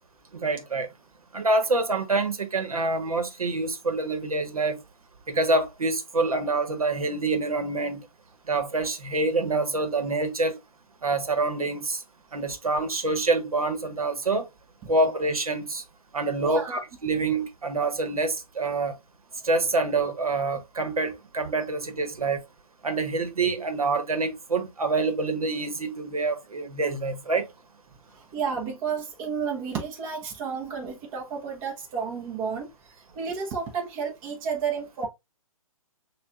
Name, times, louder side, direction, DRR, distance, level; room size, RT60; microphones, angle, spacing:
voice 1, 0.3-0.9 1.3-4.8 5.3-8.0 8.5-10.6 11.0-12.0 12.3-14.5 14.9-15.8 16.1-19.0 19.4-22.4 22.8-27.5, right 3 dB, 80° right, 1.1 m, -26 dB
voice 2, 16.4-16.8 28.1-35.1, right 6 dB, 25° right, 0.9 m, -32 dB
6.5 x 2.4 x 2.5 m
figure-of-eight pair, 130°, 18 cm